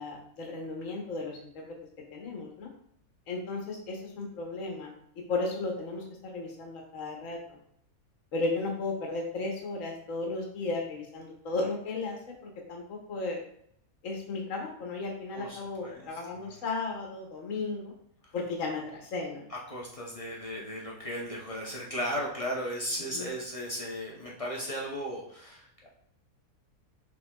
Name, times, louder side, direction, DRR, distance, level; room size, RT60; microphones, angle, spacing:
voice 1, 0.0-1.8 2.1-2.7 3.3-4.9 5.3-7.6 8.3-13.4 14.0-17.9 18.3-19.5 23.1-23.3, left 3 dB, 65° left, 0 dB, 1.3 m, -35 dB
voice 2, 15.3-16.6 18.2-18.3 19.5-25.9, equal, 40° left, -3 dB, 0.5 m, -36 dB
5.7 x 3.4 x 2.2 m, 0.68 s
omnidirectional pair, 1.5 m